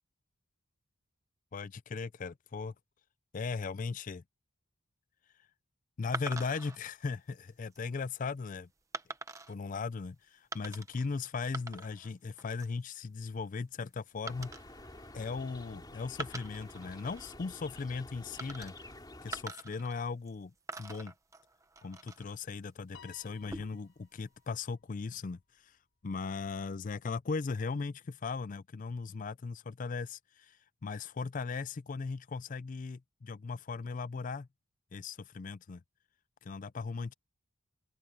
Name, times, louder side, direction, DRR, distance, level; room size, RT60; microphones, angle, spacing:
voice 1, 1.5-2.7 3.3-4.2 6.0-8.7 9.5-14.5 15.1-18.7 19.2-20.5 20.8-21.1 21.8-25.8 26.0-34.5 34.9-35.8 36.4-37.1, left 4 dB, 40° left, 0.4 m, -38 dB
sound 1, 6.1-6.8 7.5-7.8 8.9-9.5 10.5-11.1 11.4-12.1 12.4-12.8 14.3-15.7 16.1-17.4 18.4-19.0 19.3-20.4 20.7-22.4 23.3-23.9, right 3 dB, 15° right, 0.9 m, -44 dB
sound 2, 14.2-19.4, left 2 dB, 20° left, 3.7 m, -50 dB
Piano, 22.9-25.4, left 7 dB, 70° left, 6.8 m, -59 dB
open air
head